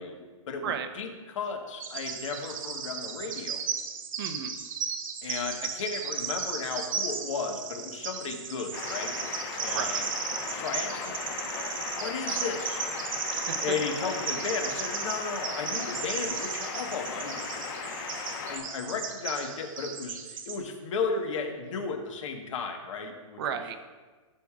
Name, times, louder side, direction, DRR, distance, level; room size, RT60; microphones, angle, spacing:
voice 1, 0.0-3.6 5.2-9.2 9.5-10.1 10.5-12.8 13.6-17.4 18.5-23.4, left 5 dB, 65° left, 4 dB, 1.4 m, -34 dB
Bird vocalization bird call bird song, 1.8-20.6, right 6 dB, 80° right, 1.1 m, -35 dB
voice 2, 4.2-4.5 9.7-10.0 13.3-13.6 23.4-23.8, right 7 dB, 45° right, 7 dB, 0.7 m, -33 dB
sound 1, 8.7-18.6, left 5 dB, 40° left, 1.2 m, -37 dB
14.5 x 6.6 x 2.4 m, 1.4 s
hypercardioid pair, 160°, 17 cm